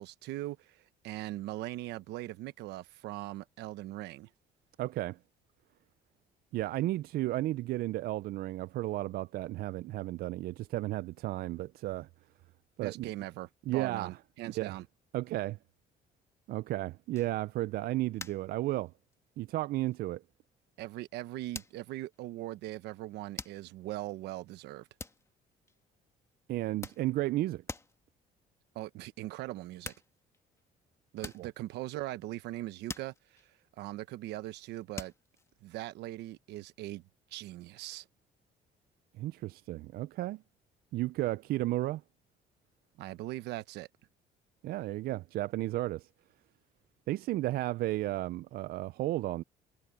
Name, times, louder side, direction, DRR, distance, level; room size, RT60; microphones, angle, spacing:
voice 1, 0.0-4.3 12.8-14.9 20.8-24.9 28.7-29.9 31.1-33.4 33.8-35.1 35.6-37.0 37.3-38.1 43.0-43.9, right 16 dB, 85° right, 1.1 m, -40 dB
voice 2, 4.8-5.2 6.5-12.1 12.8-13.1 13.7-14.1 14.5-14.7 15.1-15.6 16.5-18.9 19.4-20.2 26.5-27.6 31.4-31.5 39.2-40.4 40.9-42.0 44.6-46.1 47.1-49.4, right 16 dB, 65° right, 0.4 m, -33 dB
sound 1, 17.2-17.7 18.2-18.6 18.9-19.3 19.9-20.0 21.5-22.2 23.4-23.9 25.0-25.9 26.5-27.4 27.7-28.1 29.5-29.6 29.8-30.6 31.1-32.6 32.9-34.1 35.0-35.6, left 3 dB, 15° left, 1.7 m, -45 dB
cardioid pair, 110°, 17 cm